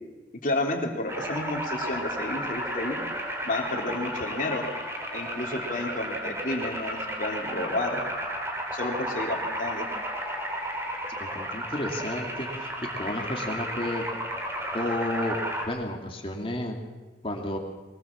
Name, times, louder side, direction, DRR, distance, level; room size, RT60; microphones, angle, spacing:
voice 1, 0.4-3.0 3.4-4.7 5.1-8.0 8.7-9.9, left 2 dB, 45° left, 1 dB, 3.5 m, -31 dB
sound 1, 1.1-15.7, equal, 15° right, 3.4 m, -33 dB
voice 2, 11.2-12.7 12.9-14.0 14.7-15.4 15.7-16.8 17.2-17.6, left 1 dB, 30° left, 2 dB, 2.7 m, -31 dB
23.0 x 19.0 x 7.5 m, 1.2 s
head